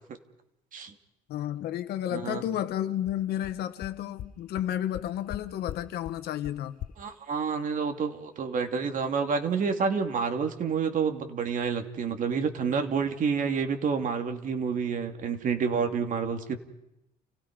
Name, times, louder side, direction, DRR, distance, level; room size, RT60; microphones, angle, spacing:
voice 1, 1.3-6.8, left 11 dB, 75° left, 1.6 m, -32 dB
voice 2, 2.1-2.4 7.0-16.6, right 6 dB, 50° right, 2.8 m, -29 dB
sound 1, 2.7-2.8 3.1-3.2 3.4-3.5 3.8-3.9 4.2-4.3 4.6-4.7 4.9-5.4 5.7-5.8 6.0-6.1 6.4-6.5 6.8-6.9, left 12 dB, 55° left, 0.9 m, -38 dB
30.0 x 16.5 x 5.5 m
cardioid pair, 110°, 17 cm